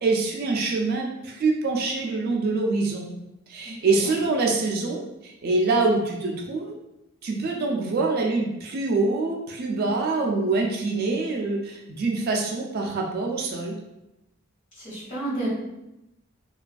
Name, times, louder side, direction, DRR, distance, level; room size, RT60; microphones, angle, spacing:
voice 1, 0.0-3.1 3.5-6.7 7.2-13.8, right 3 dB, 50° right, 1 dB, 0.3 m, -25 dB
voice 2, 14.8-15.5, right 2 dB, 45° left, -10 dB, 1.3 m, -31 dB
2.4 x 2.3 x 2.3 m, 0.90 s
head